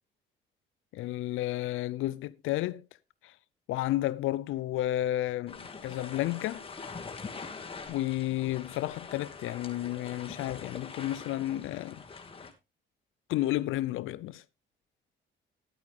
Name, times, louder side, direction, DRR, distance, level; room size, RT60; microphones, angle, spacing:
voice 1, 0.9-2.8 3.2-3.3 3.7-6.6 7.9-12.0 13.3-14.4, left 15 dB, 90° left, 0.6 m, -32 dB
sound 1, 5.5-12.5, left 4 dB, 25° left, 2.4 m, -44 dB
11.5 x 8.8 x 3.6 m
cardioid pair, 90°, 20 cm